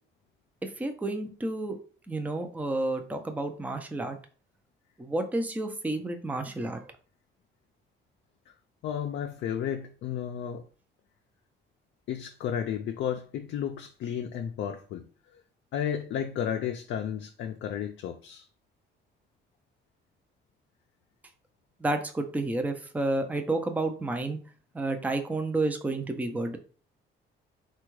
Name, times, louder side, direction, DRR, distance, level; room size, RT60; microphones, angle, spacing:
voice 1, 0.8-1.8 2.1-4.2 5.0-6.8 21.8-24.4 24.7-26.6, right 2 dB, 10° right, 0.5 m, -30 dB
voice 2, 8.8-10.6 12.1-15.1 15.3-15.4 15.7-18.5, left 9 dB, 70° left, 0.4 m, -33 dB
3.4 x 2.3 x 3.0 m
cardioid pair, 90°, 20 cm